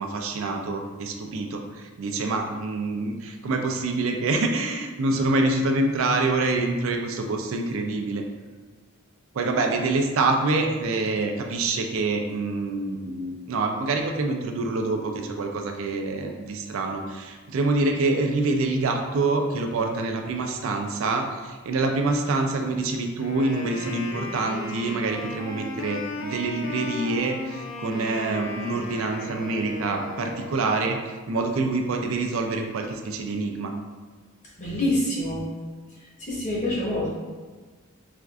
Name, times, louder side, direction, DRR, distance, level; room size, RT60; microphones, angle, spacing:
voice 1, 0.0-8.3 9.3-33.7, right 3 dB, 75° right, 3 dB, 0.4 m, -26 dB
Wind instrument woodwind instrument, 23.1-30.9, left 2 dB, 60° left, 0.4 m, -36 dB
voice 2, 34.6-35.4 36.3-37.1, left 1 dB, 35° left, -6 dB, 0.9 m, -26 dB
4.3 x 2.4 x 2.4 m, 1.4 s
head